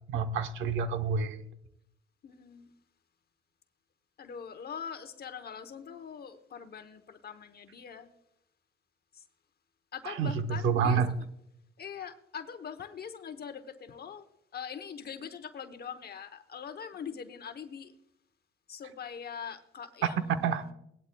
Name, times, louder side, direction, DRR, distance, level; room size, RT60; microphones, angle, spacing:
voice 1, 0.1-1.4 10.0-11.1 20.3-20.6, right 6 dB, 85° right, 9 dB, 0.9 m, -28 dB
voice 2, 2.2-2.7 4.2-8.1 9.1-9.2 9.9-11.2 11.8-14.3 14.5-17.9 18.7-20.7, left 7 dB, 50° left, 9 dB, 0.9 m, -42 dB
18.0 x 11.5 x 2.3 m, 0.78 s
cardioid pair, 90°, 20 cm